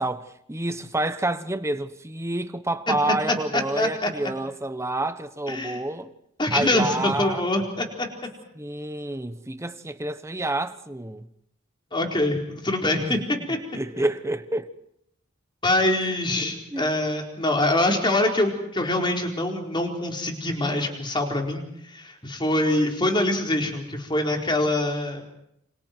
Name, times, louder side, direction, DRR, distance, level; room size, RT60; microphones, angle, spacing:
voice 1, 0.0-6.1 6.5-7.4 8.5-11.2 13.0-13.2 13.7-14.7 16.7-16.9, right 2 dB, 15° right, 1.1 m, -28 dB
voice 2, 3.3-4.1 5.5-5.8 6.4-8.1 11.9-13.2 13.5-13.6 15.6-21.6 21.9-25.2, left 1 dB, 20° left, 4.3 m, -24 dB
29.5 x 27.0 x 4.6 m
head